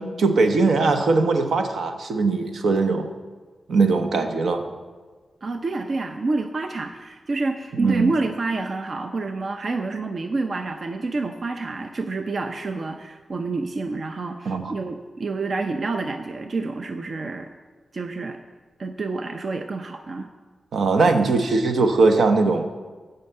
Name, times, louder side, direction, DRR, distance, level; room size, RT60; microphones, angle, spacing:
voice 1, 0.0-3.1 3.7-4.6 7.8-8.1 14.4-14.7 20.7-22.6, right 3 dB, 85° right, 6 dB, 0.9 m, -20 dB
voice 2, 5.4-17.5 17.9-18.4 18.8-20.3, right 3 dB, 55° right, 6 dB, 0.5 m, -28 dB
8.9 x 5.6 x 7.9 m, 1.4 s
wide cardioid pair, 90°, 0 cm